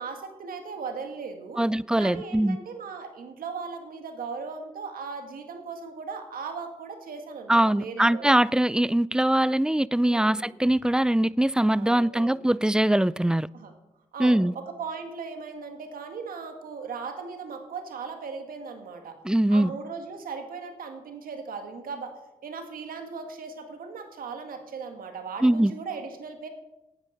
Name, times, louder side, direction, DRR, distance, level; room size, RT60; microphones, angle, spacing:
voice 1, 0.0-1.6 2.0-8.3 10.0-10.5 11.7-12.4 13.5-13.7 14.1-19.2 19.5-22.1 22.4-26.5, right 5 dB, 75° right, 1.8 m, -38 dB
voice 2, 1.6-2.6 7.5-13.5 14.2-14.5 19.2-19.7 25.4-25.7, right 1 dB, 5° right, 0.4 m, -22 dB
9.9 x 9.0 x 6.4 m
supercardioid pair, 40°, 15 cm